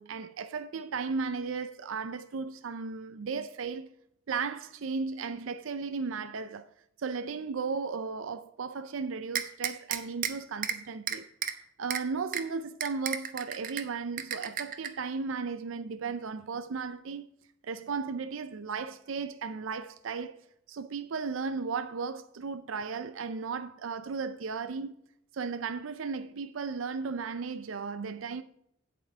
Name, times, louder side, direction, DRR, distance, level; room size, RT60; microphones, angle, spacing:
voice 1, 0.0-3.9 4.3-6.7 7.0-11.3 11.8-17.3 17.6-20.4 20.7-24.9 25.3-28.4, right 5 dB, 80° right, 0.5 m, -35 dB
sound 1, 9.3-10.3 10.6-10.8 11.1-11.5 11.9-12.0 12.3-12.4 12.8-13.8 14.2-14.9, right 8 dB, 45° right, 0.8 m, -32 dB
8.7 x 8.3 x 4.5 m
head